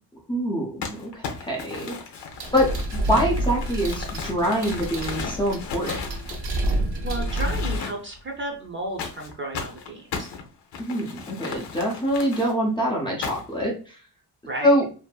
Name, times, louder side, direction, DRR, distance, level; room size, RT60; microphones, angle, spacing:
voice 1, 0.3-1.9 2.5-6.0 10.8-14.0 14.6-14.9, equal, 10° left, -2 dB, 0.6 m, -25 dB
Crumpling crinkling, 0.8-6.8 7.2-8.2 9.0-12.5 13.2-13.6, left 5 dB, 70° left, 0.7 m, -36 dB
sound 1, 2.4-7.8, right 1 dB, 65° right, 0.8 m, -28 dB
voice 2, 6.7-10.3 14.5-14.8, right 2 dB, 30° right, 0 dB, 0.6 m, -33 dB
2.6 x 2.6 x 2.3 m, 0.38 s
cardioid pair, 135°, 42 cm